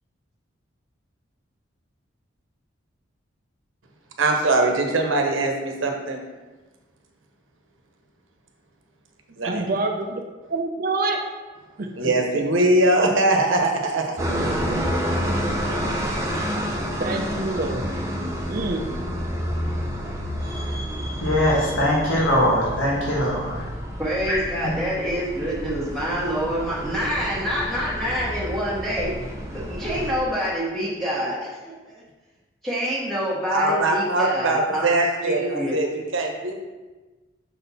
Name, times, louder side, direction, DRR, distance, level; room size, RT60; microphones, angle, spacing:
voice 1, 4.2-6.2 9.4-9.6 12.0-14.2 33.5-36.5, right 2 dB, 85° right, 2 dB, 1.0 m, -21 dB
voice 2, 9.5-10.2 10.5-11.2 11.8-11.9 17.0-17.9 18.5-18.9, right 2 dB, 45° right, 3 dB, 0.5 m, -26 dB
sound 1, 14.2-30.1, equal, 15° right, 0.8 m, -29 dB
voice 3, 21.2-23.6 24.3-24.4, left 1 dB, 90° left, -4 dB, 1.4 m, -21 dB
voice 4, 24.0-29.1 29.5-32.0 32.6-35.0 35.2-35.8, equal, ahead, -8 dB, 1.1 m, -27 dB
6.2 x 4.2 x 4.1 m, 1.2 s
head